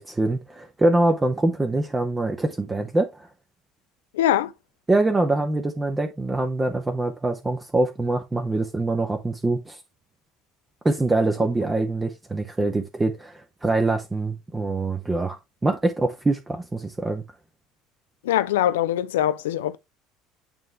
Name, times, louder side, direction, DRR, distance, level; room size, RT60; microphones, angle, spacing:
voice 1, 0.0-3.3 4.9-9.8 10.8-17.2, right 2 dB, 15° right, 0.8 m, -24 dB
voice 2, 4.1-4.5 18.2-19.8, left 12 dB, 70° left, 0.4 m, -22 dB
9.0 x 3.2 x 3.4 m
figure-of-eight pair, 65°, 0 cm